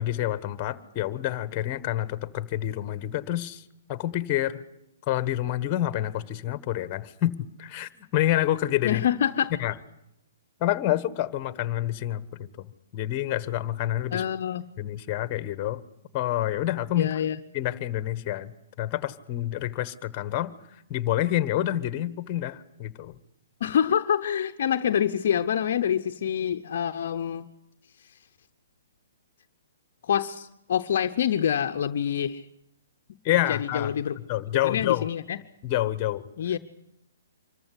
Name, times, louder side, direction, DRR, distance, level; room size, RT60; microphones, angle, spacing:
voice 1, 0.0-3.6 3.9-4.6 5.1-9.0 9.6-9.7 10.6-12.2 12.6-12.7 12.9-14.2 14.8-15.8 16.1-17.1 17.5-20.5 20.9-23.1 33.2-33.9 34.3-35.1 35.6-36.3, left 13 dB, 30° left, 14 dB, 1.3 m, -28 dB
voice 2, 8.8-9.5 14.1-14.6 17.0-17.4 23.6-27.5 30.0-32.5 33.5-34.2 34.6-35.4 36.4-36.6, left 9 dB, 60° left, 7 dB, 0.8 m, -26 dB
25.5 x 14.5 x 10.0 m, 0.83 s
hypercardioid pair, 140°, 0 cm